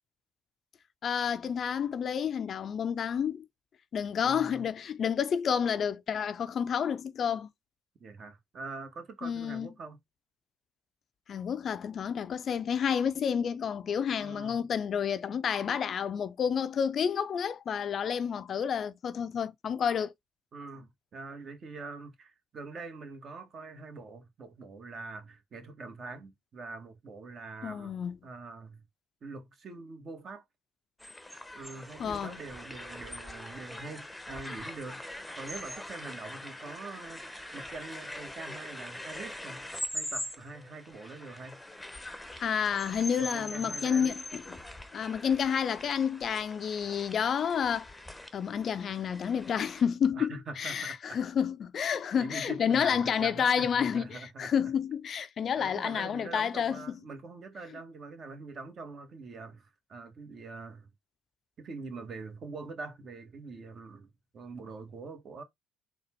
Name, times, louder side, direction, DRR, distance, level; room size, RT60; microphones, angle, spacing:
voice 1, 1.0-3.5 3.9-7.5 9.2-9.7 11.3-20.1 27.6-28.2 32.0-32.4 42.4-44.6 44.9-48.0 48.3-57.0, left 7 dB, 50° left, 0.4 m, -30 dB
voice 2, 4.2-4.7 8.0-10.0 14.2-14.6 20.5-28.8 29.2-30.4 31.5-39.7 39.9-41.6 43.2-44.2 50.1-51.2 52.2-54.5 55.5-60.9 61.6-65.4, right 3 dB, 50° right, 1.4 m, -44 dB
sound 1, 31.0-49.8, left 1 dB, 10° left, 0.8 m, -43 dB
4.1 x 2.3 x 4.4 m
supercardioid pair, 70°, 0 cm